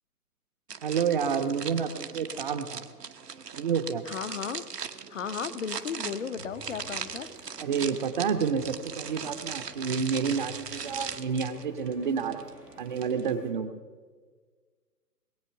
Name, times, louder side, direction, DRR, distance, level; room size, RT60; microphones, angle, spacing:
sound 1, 0.7-13.3, right 6 dB, 80° right, 1.2 m, -39 dB
voice 1, 0.8-2.9 3.5-4.1 7.6-12.5 12.8-13.8, right 6 dB, 30° right, 8 dB, 0.8 m, -29 dB
voice 2, 4.1-4.6 5.1-7.3, left 7 dB, 50° left, 10 dB, 0.9 m, -35 dB
sound 2, 6.3-13.5, equal, 5° left, 0.5 m, -50 dB
21.0 x 8.5 x 5.7 m, 1.5 s
figure-of-eight pair, 130°, 48 cm